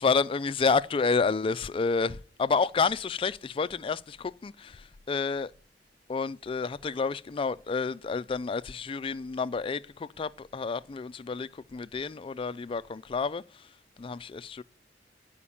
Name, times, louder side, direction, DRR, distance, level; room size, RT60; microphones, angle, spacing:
voice 1, 0.0-5.5 6.1-13.7 14.0-14.6, left 4 dB, 30° left, 0.3 m, -29 dB
9.8 x 5.1 x 7.1 m
head